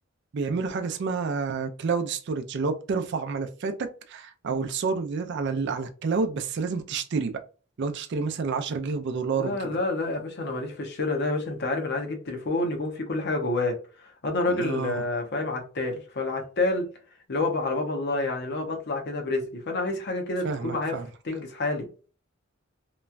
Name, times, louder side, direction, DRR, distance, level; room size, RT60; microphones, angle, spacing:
voice 1, 0.3-7.4 7.8-9.8 14.5-15.0 20.4-21.1, right 4 dB, 60° right, 0.4 m, -29 dB
voice 2, 9.3-13.8 14.2-16.9 17.3-21.0 21.2-21.9, left 2 dB, 55° left, 0.7 m, -28 dB
3.0 x 2.2 x 2.4 m
head